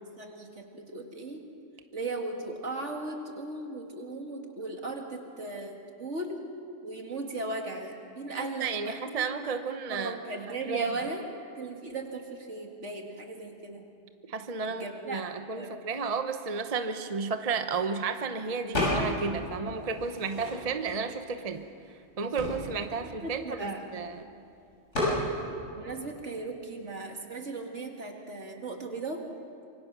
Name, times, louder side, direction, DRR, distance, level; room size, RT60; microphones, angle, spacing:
voice 1, 0.0-1.4 1.9-6.4 6.8-9.2 9.9-11.3 11.6-13.8 14.7-15.2 15.5-15.7 23.2-23.9 25.7-29.3, right 2 dB, 70° right, 3 dB, 2.4 m, -37 dB
voice 2, 8.4-10.2 10.6-10.9 14.3-21.6 22.2-24.2, right 5 dB, 35° right, 8 dB, 0.9 m, -32 dB
sound 1, 18.7-19.3 19.7-20.9 21.5-21.6 21.9-24.1 24.9-25.2, left 1 dB, 75° left, 7.2 m, -31 dB
26.0 x 23.5 x 6.1 m, 2.5 s
omnidirectional pair, 1.3 m